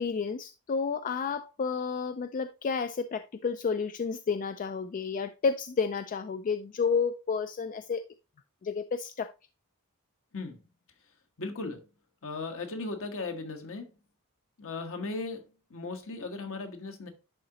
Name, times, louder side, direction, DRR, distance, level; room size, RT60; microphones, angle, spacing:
voice 1, 0.0-8.0 8.6-9.3, left 5 dB, 35° left, 0.3 m, -31 dB
voice 2, 11.4-11.9 12.2-13.9 14.6-17.1, left 3 dB, 65° left, 1.3 m, -37 dB
10.5 x 3.8 x 2.9 m
head